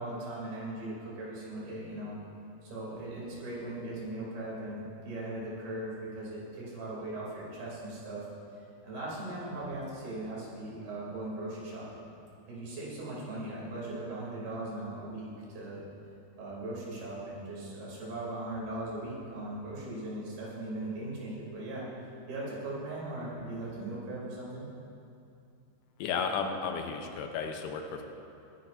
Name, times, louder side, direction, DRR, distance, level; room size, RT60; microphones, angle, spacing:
voice 1, 0.0-2.2 2.6-8.3 8.5-12.0 12.5-15.8 16.4-21.9 22.3-24.7, right 1 dB, 70° right, -6 dB, 4.7 m, -39 dB
voice 2, 26.0-28.0, left 6 dB, 85° left, 4 dB, 2.8 m, -33 dB
22.0 x 11.0 x 2.6 m, 2.6 s
omnidirectional pair, 4.7 m